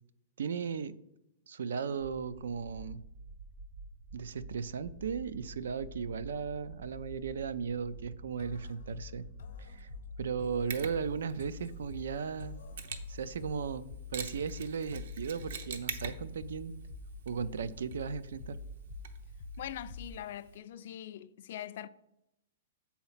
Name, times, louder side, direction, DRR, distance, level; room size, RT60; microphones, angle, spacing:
voice 1, 0.4-0.9 1.5-3.0 4.1-9.3 9.6-9.9 10.2-12.6 13.1-16.7 17.3-18.6, right 6 dB, 90° right, 0.4 m, -36 dB
sound 1, 2.0-20.2, right 2 dB, 25° right, 0.4 m, -49 dB
sound 2, 8.4-20.4, left 11 dB, 75° left, 0.7 m, -49 dB
Mechanisms, 10.7-20.6, right 6 dB, 65° right, 0.8 m, -46 dB
voice 2, 19.6-21.9, left 11 dB, 50° left, 0.3 m, -42 dB
6.9 x 4.2 x 5.7 m
hypercardioid pair, 170°, 0 cm